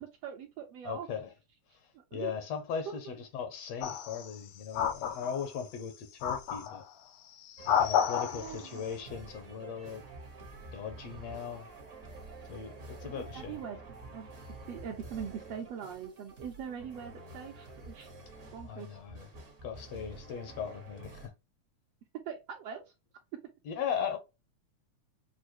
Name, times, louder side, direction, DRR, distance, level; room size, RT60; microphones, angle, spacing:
voice 1, 0.0-1.1 2.1-2.3 8.3-8.8 13.0-13.8 14.1-14.3 14.7-18.1 18.5-19.0 22.2-22.8, right 7 dB, 70° right, 1.5 m, -42 dB
voice 2, 0.8-1.3 2.1-6.8 7.6-10.0 10.7-11.7 12.5-13.6 18.6-19.3 19.6-21.3 23.7-24.2, left 7 dB, 70° left, 1.8 m, -38 dB
sound 1, 3.8-4.3 4.7-5.6 6.2-6.8 7.4-8.6, left 9 dB, 85° left, 2.2 m, -30 dB
sound 2, 7.6-21.3, right 2 dB, 50° right, 0.8 m, -49 dB
6.3 x 2.5 x 2.9 m
omnidirectional pair, 3.4 m